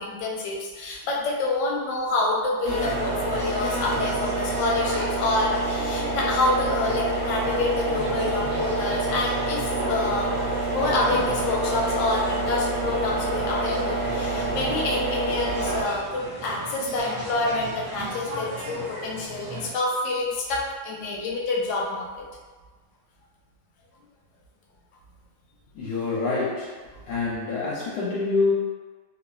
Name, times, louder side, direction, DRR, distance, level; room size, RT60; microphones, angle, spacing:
voice 1, 0.0-10.4 10.7-22.1, left 2 dB, 65° left, -2 dB, 0.8 m, -27 dB
sound 1, 2.6-15.8, right 2 dB, 50° right, 1.0 m, -27 dB
sound 2, 2.8-19.7, right 2 dB, 70° right, 1.2 m, -36 dB
voice 2, 25.7-26.7 27.0-28.5, left 3 dB, 90° left, -6 dB, 1.2 m, -26 dB
3.1 x 2.1 x 2.3 m, 1.4 s
omnidirectional pair, 1.7 m